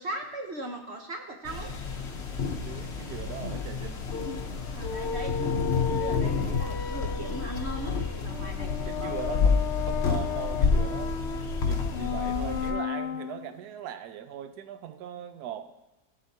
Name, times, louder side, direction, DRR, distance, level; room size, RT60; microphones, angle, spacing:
voice 1, 0.0-1.7 4.7-5.3 5.9-9.1, right 1 dB, 50° right, 2 dB, 1.0 m, -39 dB
sound 1, 1.4-12.7, left 5 dB, 50° left, 0.9 m, -29 dB
voice 2, 2.6-4.1 8.8-11.3 11.6-15.7, right 10 dB, 70° right, 9 dB, 1.2 m, -40 dB
sound 2, 4.1-13.5, left 7 dB, 90° left, 0.6 m, -35 dB
15.5 x 8.1 x 2.8 m, 1.0 s
omnidirectional pair, 1.8 m